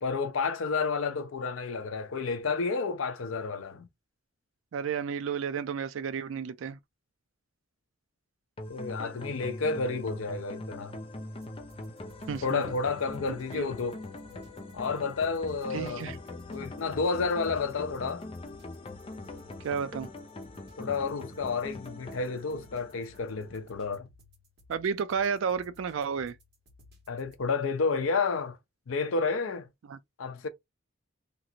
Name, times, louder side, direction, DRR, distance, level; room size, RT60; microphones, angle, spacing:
voice 1, 0.0-3.9 8.7-11.0 12.4-14.0 14.7-16.2 16.5-18.2 20.8-24.1 27.1-28.6 28.9-29.7 30.2-30.5, left 4 dB, 80° left, 0.6 m, -30 dB
voice 2, 4.7-6.8 12.3-12.6 13.5-13.7 15.7-16.2 19.6-20.1 24.7-26.3 29.9-30.0, right 6 dB, 70° right, 0.3 m, -32 dB
sound 1, 8.6-23.6, left 2 dB, 25° left, 0.5 m, -42 dB
sound 2, 11.3-27.4, left 2 dB, 50° right, 1.5 m, -59 dB
3.0 x 2.4 x 2.7 m
head